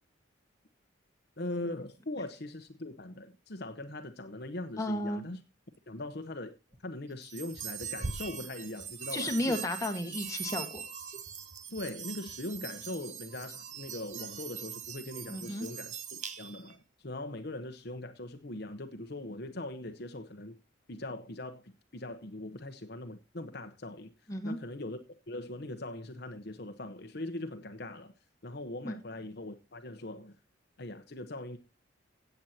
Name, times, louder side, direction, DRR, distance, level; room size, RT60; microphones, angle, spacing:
voice 1, 1.4-5.4 5.9-6.6 6.8-9.6 11.7-20.5 20.9-24.1 24.4-25.0 25.3-28.1 28.4-30.3 30.8-31.6, left 1 dB, 50° left, 1.0 m, -41 dB
voice 2, 4.8-5.2 9.1-10.8 15.3-15.7 24.3-24.6 28.8-28.9, left 1 dB, 15° left, 1.6 m, -33 dB
sound 1, 7.2-16.7, right 6 dB, 35° right, 1.0 m, -42 dB
17.0 x 8.1 x 2.9 m
head